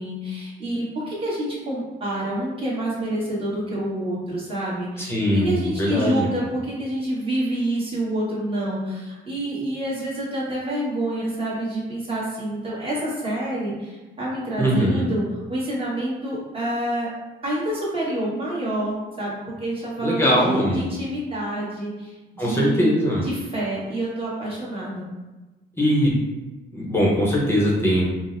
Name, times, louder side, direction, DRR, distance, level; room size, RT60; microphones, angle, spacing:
voice 1, 0.0-17.1 17.4-22.9 23.2-25.1, right 1 dB, 30° right, -7 dB, 1.4 m, -27 dB
voice 2, 5.0-6.3 14.6-15.1 20.0-20.8 22.4-23.2 25.8-26.1 26.7-28.0, equal, 10° left, -5 dB, 0.8 m, -21 dB
3.7 x 2.1 x 2.6 m, 1.1 s
cardioid pair, 90°, 20 cm